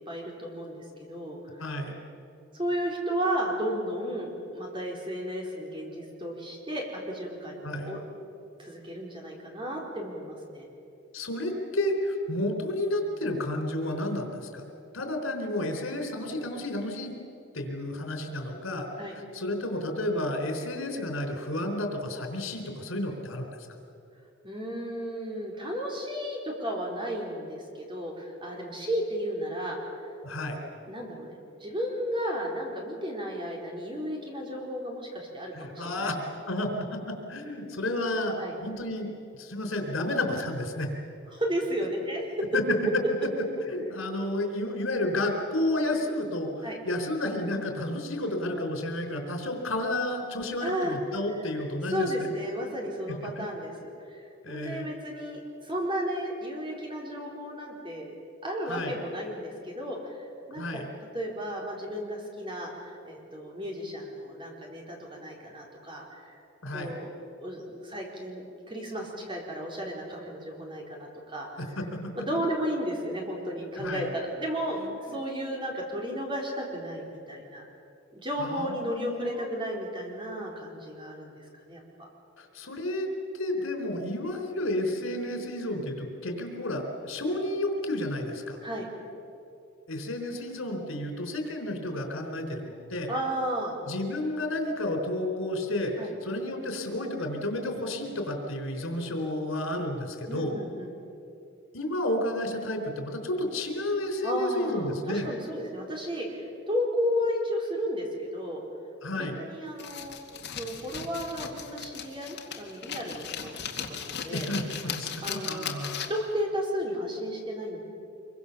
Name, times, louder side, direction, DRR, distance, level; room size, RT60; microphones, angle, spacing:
voice 1, 0.0-1.6 2.5-8.0 8.6-10.7 19.0-19.1 24.4-29.8 30.9-31.3 31.6-36.1 38.4-38.5 41.3-42.3 46.6-46.8 50.6-51.0 51.9-58.1 58.4-60.8 61.1-66.3 66.7-67.1 67.4-71.7 72.2-74.8 75.1-77.7 78.1-82.1 88.6-88.9 93.1-93.8 96.0-96.1 100.3-100.9 104.2-108.6 109.1-113.6 113.9-114.5 115.2-115.7 116.1-117.8, equal, 25° right, -1 dB, 4.4 m, -33 dB
voice 2, 1.6-2.0 7.6-8.0 11.1-14.6 14.9-17.1 17.5-18.9 19.3-23.5 30.2-30.6 35.5-36.2 36.5-39.1 39.3-40.9 42.5-42.6 43.7-52.3 53.4-53.5 54.4-54.9 58.7-58.9 60.6-60.9 66.6-67.0 71.6-72.0 73.8-74.1 75.1-75.2 78.4-79.5 82.4-83.1 83.3-88.6 89.9-93.1 93.9-95.9 96.2-100.5 101.7-105.3 109.0-109.4 114.3-116.1, left 1 dB, 85° left, 4 dB, 3.9 m, -31 dB
sound 1, 109.8-116.3, left 8 dB, 60° left, 2.2 m, -37 dB
25.0 x 23.5 x 7.1 m, 2.7 s
head